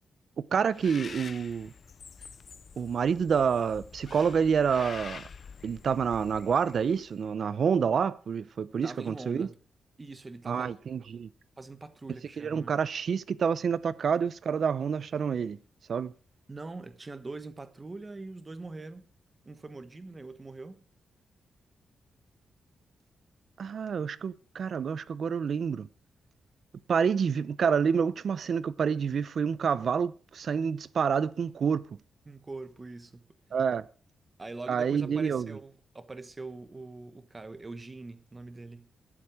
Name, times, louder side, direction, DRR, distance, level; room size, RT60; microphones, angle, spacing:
voice 1, 0.4-1.7 2.8-5.2 5.6-9.5 10.5-11.3 12.4-15.6 15.9-16.1 23.6-25.9 26.9-31.9 33.5-33.8 34.7-35.6, right 6 dB, 50° right, 0.7 m, -28 dB
Bird, 0.7-7.1, left 5 dB, 45° left, 0.6 m, -46 dB
voice 2, 8.8-9.6 10.0-10.7 11.6-12.7 16.5-19.0 19.4-20.8 32.3-33.3 34.4-38.9, right 3 dB, 20° right, 1.1 m, -43 dB
20.5 x 7.5 x 4.9 m
wide cardioid pair, 155°, 0 cm